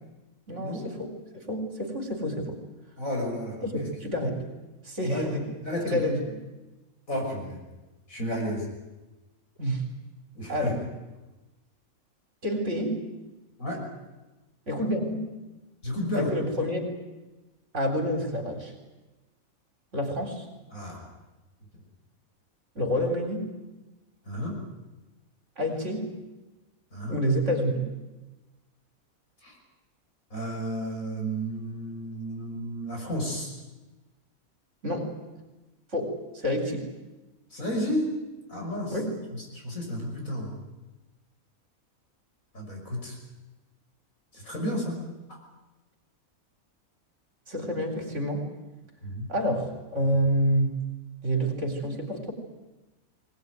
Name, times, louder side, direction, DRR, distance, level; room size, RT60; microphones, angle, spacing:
voice 1, 0.5-1.2 1.5-2.6 3.6-4.4 4.8-5.5 5.8-6.4 9.6-9.8 10.5-10.8 12.4-13.0 14.7-15.3 16.1-16.8 17.7-18.7 19.9-20.5 22.8-23.5 25.6-26.2 27.1-27.8 34.8-35.1 35.9-36.9 38.9-39.2 47.5-48.5 49.3-50.8 51.2-52.3, equal, 55° right, 4 dB, 4.2 m, -28 dB
voice 2, 3.0-3.7 5.0-5.3 5.6-6.0 7.1-7.6 8.1-8.7 10.3-10.8 13.6-13.8 15.8-16.3 20.7-21.1 24.3-24.6 26.9-27.2 29.4-29.6 30.3-33.5 37.5-38.1 38.5-39.0 39.5-40.6 42.5-43.2 44.3-45.0 49.0-49.3, equal, 65° left, 0 dB, 6.4 m, -32 dB
21.0 x 20.0 x 9.5 m, 1.1 s
omnidirectional pair, 1.5 m